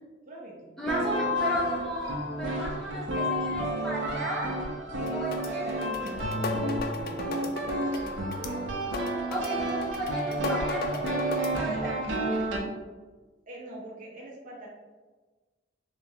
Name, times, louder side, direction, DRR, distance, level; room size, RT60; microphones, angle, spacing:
voice 1, 0.3-0.7 4.9-9.0 13.5-14.7, right 2 dB, 45° right, -4 dB, 0.9 m, -44 dB
voice 2, 0.8-4.5 5.1-5.6 9.3-12.3, right 1 dB, 5° left, -5 dB, 0.6 m, -34 dB
sound 1, 0.9-12.6, right 1 dB, 80° right, 0.6 m, -31 dB
sound 2, 5.0-11.6, left 3 dB, 55° left, 0.3 m, -37 dB
3.4 x 2.9 x 2.8 m, 1.3 s
head